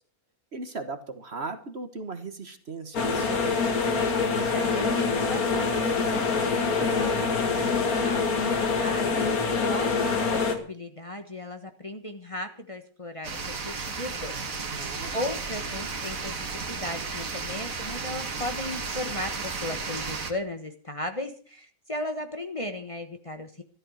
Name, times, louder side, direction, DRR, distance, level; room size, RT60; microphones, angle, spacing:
voice 1, 0.5-3.6 6.8-7.1 14.7-15.2, right 3 dB, 45° right, 9 dB, 1.6 m, -37 dB
sound 1, 2.9-10.6, left 4 dB, 75° left, 2.2 m, -25 dB
voice 2, 4.5-6.3 6.6-8.4 8.8-9.2 9.7-14.3 15.1-23.6, left 1 dB, 25° left, 5 dB, 1.4 m, -36 dB
sound 2, 13.2-20.3, right 4 dB, 65° right, 2.2 m, -34 dB
13.5 x 12.0 x 6.5 m, 0.41 s
omnidirectional pair, 1.6 m